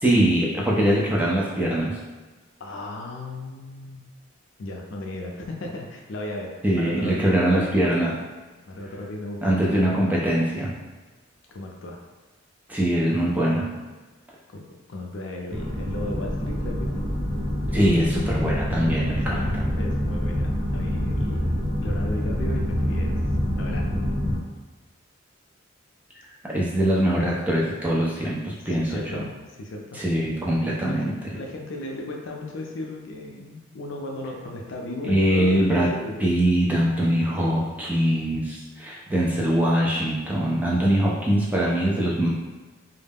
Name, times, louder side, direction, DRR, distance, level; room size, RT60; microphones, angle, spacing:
voice 1, 0.0-2.0 6.6-8.2 9.4-10.7 12.7-13.7 17.7-19.7 26.4-29.3 29.9-31.1 35.0-35.9 36.2-42.3, right 1 dB, 10° right, -5 dB, 0.4 m, -22 dB
voice 2, 2.6-4.0 4.6-7.8 8.7-10.1 11.5-12.0 14.5-14.6 14.9-17.0 19.2-19.5 19.8-23.2 23.5-23.9 28.6-30.0 30.8-36.2 37.4-37.7, left 1 dB, 60° left, 0 dB, 0.4 m, -35 dB
sound 1, 15.5-24.4, equal, 35° right, 1.1 m, -26 dB
2.2 x 2.0 x 3.4 m, 1.3 s
head